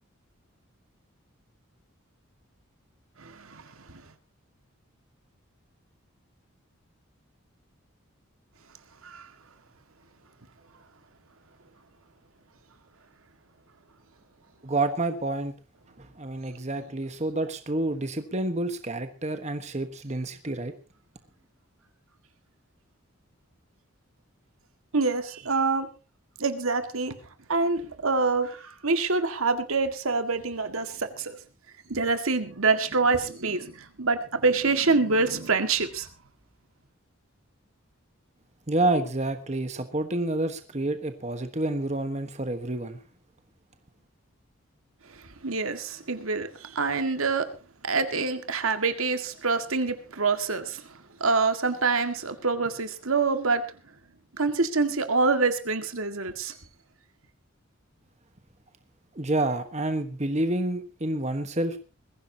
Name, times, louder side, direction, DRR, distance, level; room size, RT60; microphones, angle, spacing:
voice 1, 3.2-4.0 9.0-9.3 24.9-25.9 26.4-27.2 27.5-31.4 31.9-36.1 45.4-47.5 47.8-50.8 51.2-53.6 54.4-56.6, right 4 dB, 80° right, 8 dB, 1.9 m, -26 dB
voice 2, 14.6-15.5 16.0-20.7 38.7-43.0 59.1-61.8, right 2 dB, 35° right, 8 dB, 1.3 m, -28 dB
21.5 x 15.5 x 2.9 m, 0.33 s
head